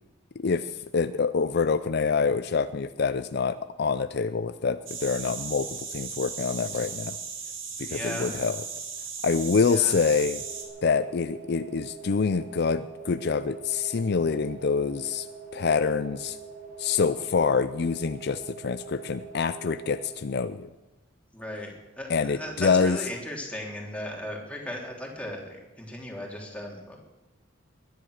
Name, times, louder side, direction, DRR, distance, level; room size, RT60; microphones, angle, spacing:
voice 1, 0.4-7.2 7.8-8.6 9.2-10.4 10.8-15.3 15.5-16.4 16.8-20.7 22.1-23.0, left 5 dB, 55° left, 12 dB, 0.5 m, -26 dB
sound 1, 4.9-10.6, right 6 dB, 85° right, 3.1 m, -37 dB
voice 2, 7.9-8.3 9.7-9.9 21.3-21.7 22.0-27.0, left 1 dB, 5° left, -1 dB, 3.1 m, -36 dB
sound 2, 10.3-20.1, right 5 dB, 40° right, 5.1 m, -44 dB
20.5 x 10.5 x 6.5 m, 1.1 s
head